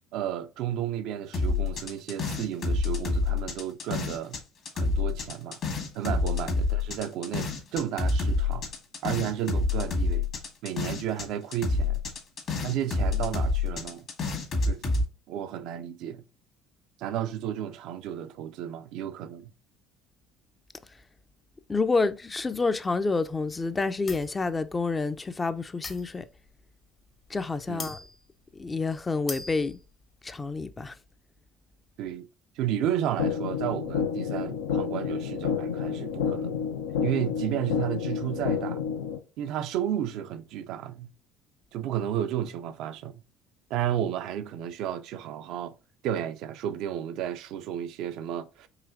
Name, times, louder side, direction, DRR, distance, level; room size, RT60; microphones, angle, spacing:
voice 1, 0.1-4.4 4.8-5.6 5.9-8.7 9.0-10.3 10.6-12.0 12.6-14.1 14.7-14.8 15.3-16.2 17.0-19.5 27.7-27.9 32.0-32.3 32.6-36.7 37.0-38.8 39.4-41.1 41.7-43.2 43.7-45.7 46.0-48.7, right 10 dB, 65° right, 0.3 m, -32 dB
sound 1, 1.3-4.4 4.7-11.3 11.5-15.0, left 3 dB, 55° left, 1.5 m, -27 dB
voice 2, 21.7-26.3 27.3-28.0 28.5-29.8 30.2-31.0, left 3 dB, 25° left, 0.4 m, -28 dB
sound 2, 24.1-24.4 25.8-26.5 27.3-27.4 27.8-28.2 28.6-28.7 29.1-29.9, left 4 dB, 40° left, 0.8 m, -40 dB
sound 3, 33.2-39.2, left 7 dB, 85° left, 0.4 m, -29 dB
4.9 x 2.7 x 2.5 m
hypercardioid pair, 65°, 0 cm